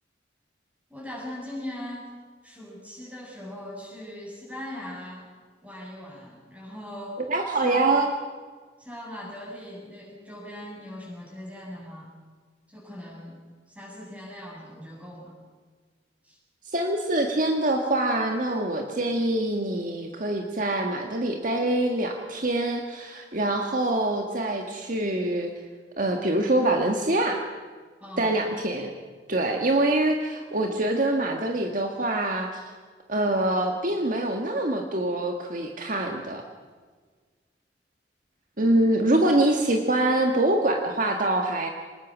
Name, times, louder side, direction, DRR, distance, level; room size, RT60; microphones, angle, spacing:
voice 1, 0.9-2.1 2.4-5.3 5.6-7.2 7.6-7.9 8.8-12.1 12.7-13.4 13.7-15.3 16.2-16.4 28.0-28.4, left 1 dB, 10° right, -2 dB, 7.1 m, -40 dB
voice 2, 7.3-8.1 16.6-25.5 26.0-27.4 28.2-28.9 29.3-32.7 33.1-36.4 38.6-41.7, right 1 dB, 45° right, 3 dB, 1.7 m, -25 dB
25.5 x 20.0 x 6.2 m, 1.5 s
head